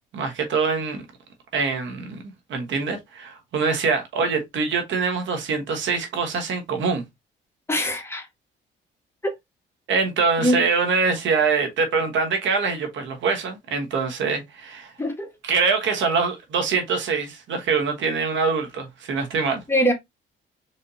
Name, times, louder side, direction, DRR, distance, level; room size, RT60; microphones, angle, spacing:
voice 1, 0.1-1.0 1.5-2.2 2.5-7.0 9.9-14.9 15.4-19.6, right 5 dB, 70° right, 1.3 m, -24 dB
voice 2, 7.7-8.3 10.4-10.6 15.0-15.3 19.7-19.9, equal, 10° left, 1.4 m, -22 dB
4.1 x 3.5 x 2.7 m
cardioid pair, 90°, 20 cm